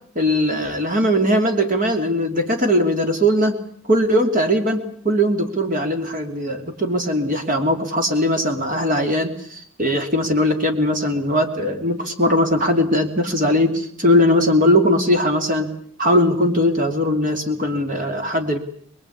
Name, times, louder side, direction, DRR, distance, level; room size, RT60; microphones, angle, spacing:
voice 1, 0.1-3.5 3.9-15.7 16.0-18.6, equal, 40° right, 5 dB, 2.8 m, -19 dB
24.5 x 21.5 x 8.5 m, 0.62 s
head